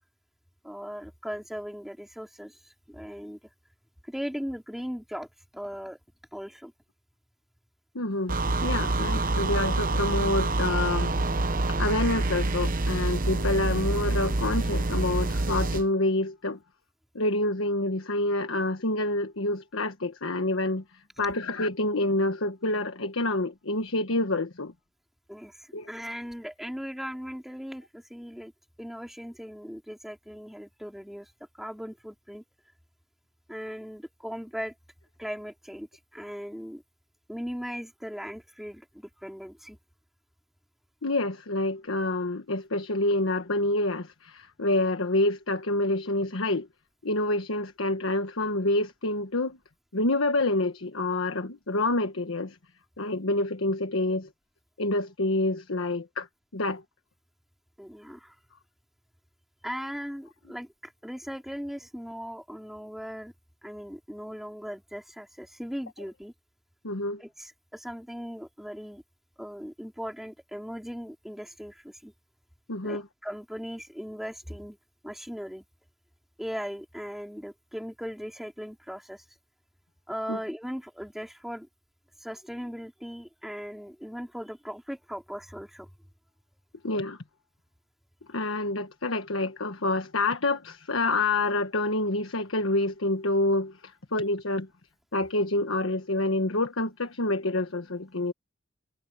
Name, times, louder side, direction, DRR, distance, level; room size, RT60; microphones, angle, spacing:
voice 1, 0.6-3.4 4.0-5.3 5.5-6.0 6.3-6.7 25.3-28.5 28.8-31.3 31.6-32.4 33.5-34.7 35.2-36.8 37.3-39.8 57.8-58.3 59.6-63.3 63.6-66.3 67.2-69.0 69.4-72.1 72.8-74.8 75.0-75.6 76.4-79.2 80.1-81.7 82.2-85.9, equal, ahead, 4.2 m, -38 dB
voice 2, 7.9-11.1 11.8-16.6 17.1-24.7 25.7-25.9 41.0-46.7 47.0-49.6 49.9-52.6 53.0-54.3 54.8-56.3 56.5-56.8 66.8-67.2 72.7-73.0 80.3-80.4 86.8-87.2 88.3-94.7 95.1-98.3, left 2 dB, 80° left, 1.4 m, -27 dB
sound 1, 8.3-15.9, right 2 dB, 45° right, 1.0 m, -27 dB
head